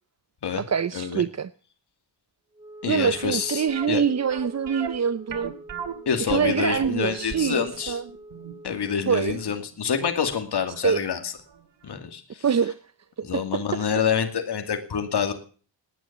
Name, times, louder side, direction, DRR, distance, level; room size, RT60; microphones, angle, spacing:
voice 1, 0.6-1.5 2.8-5.5 6.3-8.0 9.1-9.4 10.8-11.0 12.4-12.8 13.2-13.9, right 7 dB, 35° right, 0.7 m, -25 dB
Wind instrument woodwind instrument, 2.5-9.7, right 1 dB, 10° right, 1.6 m, -45 dB
voice 2, 2.8-4.0 6.1-8.0 8.6-11.3 11.8-12.4 13.2-15.3, left 7 dB, 60° left, 2.5 m, -27 dB
sound 1, 3.7-10.5 10.8-10.9 11.5-11.6 11.9-12.0, right 7 dB, 65° right, 2.4 m, -37 dB
18.5 x 10.0 x 7.3 m
cardioid pair, 80°, 45 cm